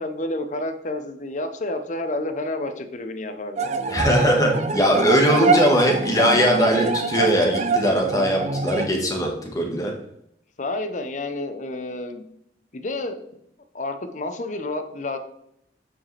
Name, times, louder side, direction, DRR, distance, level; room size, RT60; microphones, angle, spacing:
voice 1, 0.0-3.7 10.6-12.3 12.7-13.2 13.7-15.2, left 2 dB, 45° left, 8 dB, 0.7 m, -30 dB
sound 1, 3.6-8.9, right 4 dB, 40° right, 0.5 m, -24 dB
voice 2, 3.9-9.9, equal, 20° left, 1 dB, 1.4 m, -20 dB
8.8 x 4.9 x 3.3 m, 0.75 s
head